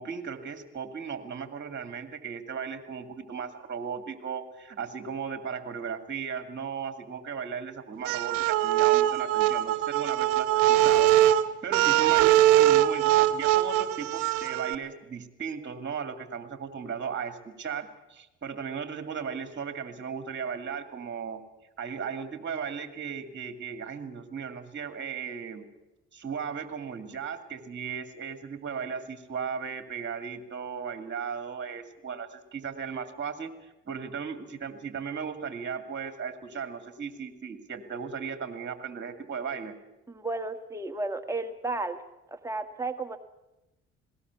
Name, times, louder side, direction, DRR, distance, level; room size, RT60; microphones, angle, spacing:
voice 1, 0.0-21.4 21.8-25.6 26.1-39.8, right 6 dB, 40° right, 9 dB, 2.3 m, -36 dB
sound 1, 8.0-14.7, right 13 dB, 80° right, 1.0 m, -22 dB
voice 2, 40.1-42.0 42.3-43.2, right 2 dB, 10° right, 5 dB, 1.6 m, -33 dB
19.5 x 18.0 x 8.2 m, 0.96 s
hypercardioid pair, 55°, 30 cm